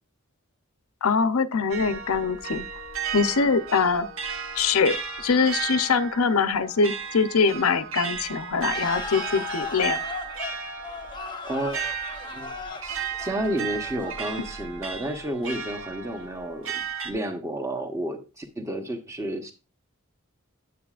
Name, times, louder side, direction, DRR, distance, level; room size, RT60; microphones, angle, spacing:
voice 1, 1.0-2.6 3.1-4.1 4.6-10.0, left 5 dB, 85° left, 0.7 m, -23 dB
sound 1, 1.7-17.1, right 7 dB, 65° right, 1.1 m, -35 dB
sound 2, 8.7-15.1, left 5 dB, 20° left, 0.9 m, -37 dB
voice 2, 11.4-11.9 12.3-12.5 12.8-19.5, right 1 dB, 15° right, 1.0 m, -31 dB
9.3 x 8.1 x 2.5 m
head